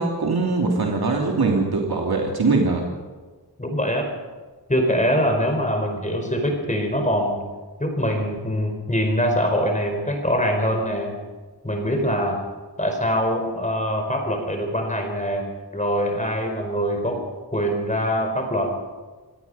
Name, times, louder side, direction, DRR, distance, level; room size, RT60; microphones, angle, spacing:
voice 1, 0.0-2.8, right 3 dB, 65° right, 0 dB, 2.9 m, -22 dB
voice 2, 3.6-4.1 4.7-7.4 7.8-11.1 11.6-12.4 12.8-15.4 15.7-17.2 17.5-18.7, equal, 20° left, 3 dB, 4.8 m, -23 dB
27.0 x 17.5 x 5.6 m, 1.4 s
wide cardioid pair, 115°, 40 cm